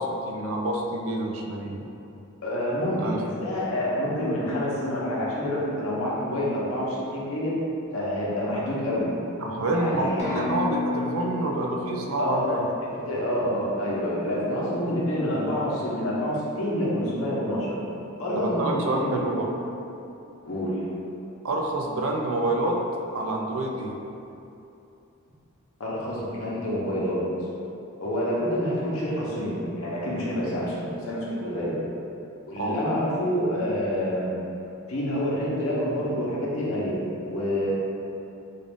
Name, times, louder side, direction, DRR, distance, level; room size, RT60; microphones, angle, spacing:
voice 1, 0.0-1.9 2.9-3.2 9.4-12.6 18.3-19.5 21.4-22.8 23.1-24.0 32.6-32.7, right 2 dB, 75° right, 0 dB, 0.5 m, -27 dB
voice 2, 2.4-7.5 7.9-9.1 9.7-10.6 12.2-12.6 12.9-17.8 18.2-19.3 20.4-20.9 25.8-27.2 28.0-31.8 32.5-34.3 34.9-37.7, equal, 75° left, -6 dB, 0.9 m, -27 dB
sound 1, 10.2-14.0, left 3 dB, 30° left, 0.6 m, -34 dB
3.6 x 2.5 x 3.5 m, 2.8 s
head